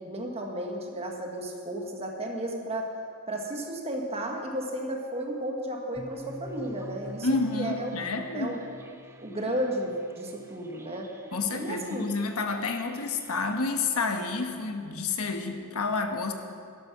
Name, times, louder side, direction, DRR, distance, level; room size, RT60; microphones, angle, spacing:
voice 1, 0.0-2.9 3.3-7.9 8.3-8.8 9.2-11.1 11.5-12.1, right 1 dB, 25° right, 1 dB, 1.5 m, -33 dB
sound 1, 5.9-13.8, equal, 10° right, 0.7 m, -48 dB
voice 2, 7.2-8.5 11.3-16.3, left 3 dB, 75° left, 5 dB, 1.2 m, -29 dB
12.0 x 12.0 x 6.0 m, 2.3 s
head